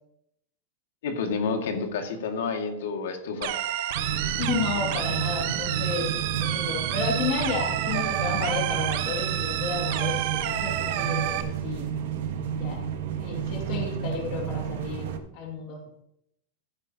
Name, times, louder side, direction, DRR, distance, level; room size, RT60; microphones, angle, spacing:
voice 1, 1.0-3.5, left 5 dB, 80° left, 4 dB, 2.0 m, -29 dB
sound 1, 3.4-11.4, right 12 dB, 45° right, 0.9 m, -29 dB
sound 2, 3.9-15.2, right 8 dB, 65° right, 1.4 m, -31 dB
voice 2, 4.4-6.1 6.4-11.9 12.6-12.8 13.2-15.1 15.3-15.8, left 5 dB, 35° left, -1 dB, 2.3 m, -32 dB
15.0 x 9.5 x 2.9 m, 0.78 s
supercardioid pair, 180°, 0 cm